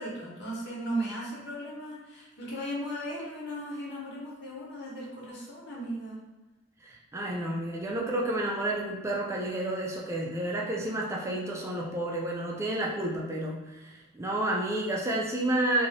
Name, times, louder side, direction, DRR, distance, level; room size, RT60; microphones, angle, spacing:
voice 1, 0.0-6.2, right 1 dB, 65° left, -5 dB, 1.0 m, -36 dB
voice 2, 6.8-15.9, right 1 dB, 15° right, -3 dB, 0.4 m, -30 dB
2.6 x 2.6 x 3.2 m, 1.1 s
head